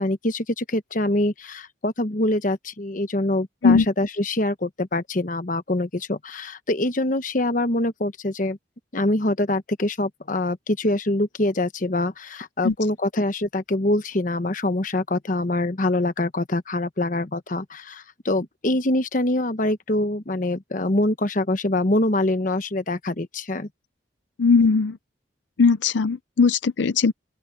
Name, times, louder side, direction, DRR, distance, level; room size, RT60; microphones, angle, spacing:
voice 1, 0.0-8.6 8.9-23.7, left 1 dB, 45° left, 1.1 m, -24 dB
voice 2, 24.4-25.0 25.6-27.1, left 4 dB, 75° left, 0.6 m, -18 dB
open air
head